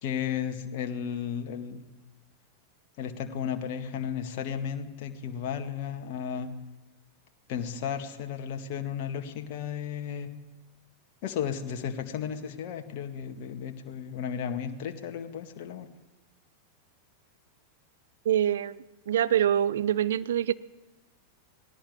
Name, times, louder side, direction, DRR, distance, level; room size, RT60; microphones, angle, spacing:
voice 1, 0.0-1.8 3.0-6.5 7.5-10.3 11.2-15.9, left 8 dB, 50° left, 6 dB, 1.9 m, -34 dB
voice 2, 18.2-20.5, right 10 dB, 60° right, 15 dB, 0.8 m, -25 dB
19.0 x 17.0 x 9.4 m, 1.0 s
figure-of-eight pair, 90°, 0 cm